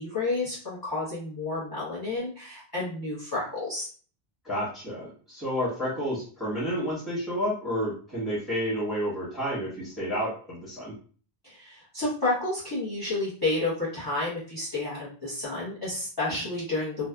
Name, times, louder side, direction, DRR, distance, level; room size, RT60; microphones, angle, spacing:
voice 1, 0.0-3.9 11.4-17.1, left 2 dB, 25° left, -9 dB, 0.9 m, -30 dB
voice 2, 4.4-10.9, equal, ahead, -8 dB, 1.2 m, -30 dB
2.6 x 2.3 x 2.3 m, 0.42 s
omnidirectional pair, 1.1 m